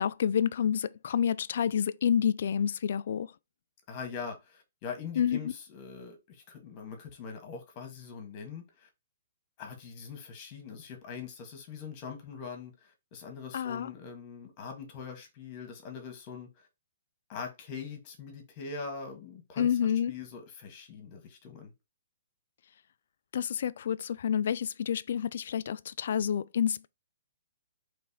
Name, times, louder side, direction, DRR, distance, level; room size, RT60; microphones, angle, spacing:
voice 1, 0.0-3.3 5.2-5.4 13.5-13.9 19.6-20.1 23.3-26.9, left 8 dB, 65° left, 0.3 m, -28 dB
voice 2, 3.9-8.9 9.6-16.5 17.3-21.7, left 5 dB, 35° left, 1.6 m, -42 dB
4.1 x 3.3 x 3.6 m
hypercardioid pair, 135°, 0 cm